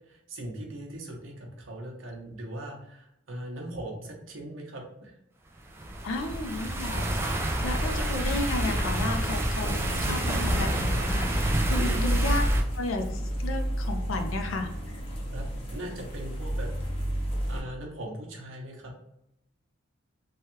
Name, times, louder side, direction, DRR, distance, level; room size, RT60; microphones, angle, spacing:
voice 1, 0.1-5.1 11.7-12.1 15.3-16.7 17.5-18.9, right 1 dB, 70° right, 0 dB, 0.8 m, -39 dB
sound 1, 5.8-12.6, right 1 dB, 10° right, 0.3 m, -28 dB
voice 2, 6.0-7.1 7.6-12.4 12.8-13.0 13.4-14.7, left 2 dB, 75° left, 4 dB, 0.5 m, -33 dB
sound 2, 9.6-17.6, equal, 25° left, 0.7 m, -30 dB
3.2 x 2.2 x 2.9 m, 0.81 s
head